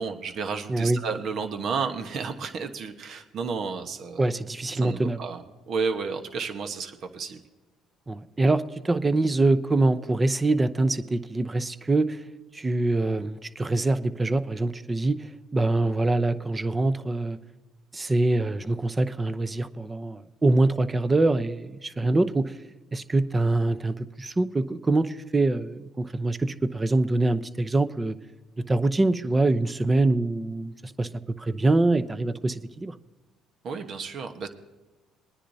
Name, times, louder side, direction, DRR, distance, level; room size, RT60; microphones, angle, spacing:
voice 1, 0.0-4.3 4.7-7.4 33.6-34.5, right 5 dB, 60° right, 7 dB, 1.1 m, -32 dB
voice 2, 4.2-5.2 8.1-12.2 12.5-17.4 17.9-22.5 22.9-28.2 28.7-31.1 31.4-32.9, right 2 dB, 20° right, 12 dB, 0.7 m, -24 dB
22.0 x 10.0 x 2.7 m, 1.2 s
supercardioid pair, 85°, 0 cm